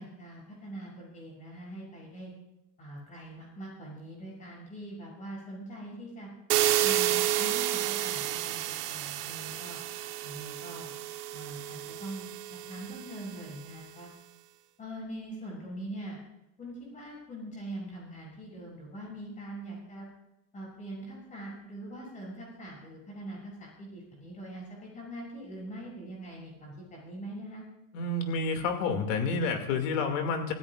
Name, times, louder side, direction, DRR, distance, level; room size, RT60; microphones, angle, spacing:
voice 1, 0.0-2.3 2.8-6.3 6.8-9.8 10.2-10.9 11.3-12.3 12.7-14.1 14.8-16.2 16.6-20.1 20.5-27.6, right 1 dB, 15° left, -3 dB, 7.0 m, -43 dB
sound 1, 6.5-13.3, right 13 dB, 70° right, 1.3 m, -30 dB
voice 2, 27.9-30.5, left 4 dB, 55° left, 4 dB, 2.6 m, -29 dB
26.5 x 16.0 x 2.5 m, 0.90 s
supercardioid pair, 165°, 47 cm